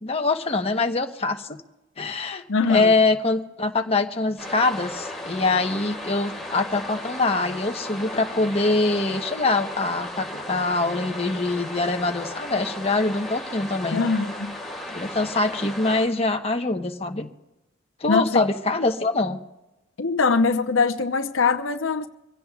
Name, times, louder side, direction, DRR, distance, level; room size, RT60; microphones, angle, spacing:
voice 1, 0.0-1.6 2.0-14.0 14.9-17.3 18.0-19.4, left 3 dB, 30° left, 1.1 m, -24 dB
voice 2, 2.5-2.9 13.9-14.6 18.1-18.4 20.0-22.1, left 4 dB, 85° left, 0.8 m, -22 dB
sound 1, 4.4-16.1, left 1 dB, ahead, 4.3 m, -35 dB
25.0 x 16.5 x 2.4 m
head